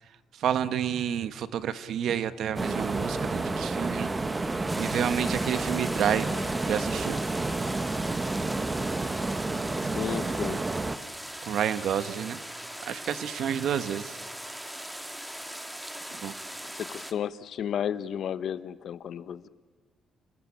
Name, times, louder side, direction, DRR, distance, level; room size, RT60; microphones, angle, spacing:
voice 1, 0.3-4.1 4.8-7.2 11.4-12.4 12.8-14.2 16.1-16.4, right 9 dB, 70° right, 13 dB, 1.3 m, -30 dB
sound 1, 2.6-11.0, right 2 dB, 25° right, 1.4 m, -30 dB
sound 2, 4.7-17.1, equal, 5° right, 2.1 m, -40 dB
voice 2, 9.8-10.6 16.7-19.5, left 9 dB, 65° left, 15 dB, 1.1 m, -33 dB
28.5 x 20.0 x 8.7 m, 1.5 s
cardioid pair, 90°, 0 cm